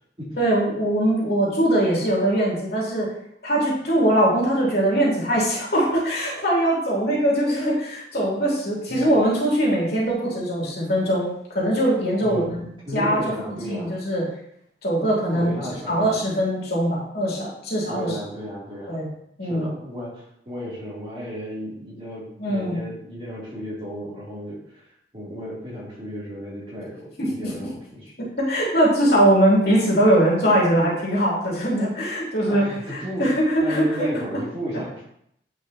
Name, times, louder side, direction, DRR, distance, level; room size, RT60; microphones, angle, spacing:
voice 1, 0.4-3.1 3.4-12.7 12.9-14.3 14.8-15.5 15.9-18.2 18.9-19.1 19.4-19.7 22.4-22.8 27.2-27.5 28.4-34.2, right 1 dB, 60° left, -6 dB, 2.9 m, -21 dB
voice 2, 12.2-12.6 12.9-14.0 15.0-16.2 17.9-19.1 19.4-24.9 25.1-28.1 32.4-33.3 33.6-35.0, equal, 30° right, -7 dB, 2.9 m, -34 dB
9.3 x 5.3 x 2.9 m, 0.72 s
head